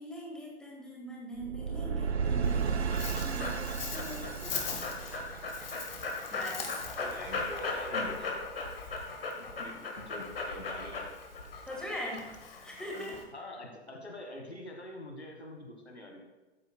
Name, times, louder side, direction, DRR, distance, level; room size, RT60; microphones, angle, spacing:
voice 1, 0.0-4.5 6.3-6.7 11.7-12.2 12.6-13.2, equal, ahead, -3 dB, 1.8 m, -42 dB
sound 1, 1.4-6.4, right 6 dB, 80° right, 0.5 m, -34 dB
Dog, 2.4-13.2, left 3 dB, 60° left, 1.6 m, -37 dB
voice 2, 7.0-8.3 9.3-11.1 13.3-16.2, left 1 dB, 85° left, 2 dB, 1.6 m, -44 dB
13.5 x 8.1 x 2.2 m, 1.1 s
figure-of-eight pair, 110°, 32 cm